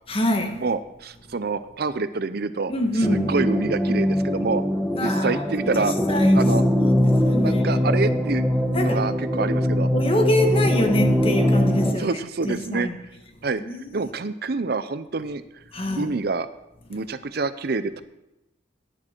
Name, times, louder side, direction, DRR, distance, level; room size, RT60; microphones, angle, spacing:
voice 1, 0.1-0.6 2.7-3.3 4.9-6.5 6.8-7.9 8.7-9.0 9.4-9.5 9.9-13.0 13.6-14.1 15.7-16.1, left 1 dB, 30° left, 1.4 m, -26 dB
voice 2, 0.6-2.7 3.1-4.6 5.0-5.9 6.3-6.6 7.4-8.5 8.8-9.9 12.0-12.9 13.4-13.6 13.9-15.4 16.0-16.5 16.9-18.0, right 4 dB, 55° right, 0.6 m, -27 dB
sound 1, 3.0-11.9, equal, 5° left, 1.3 m, -21 dB
17.0 x 9.9 x 4.5 m
head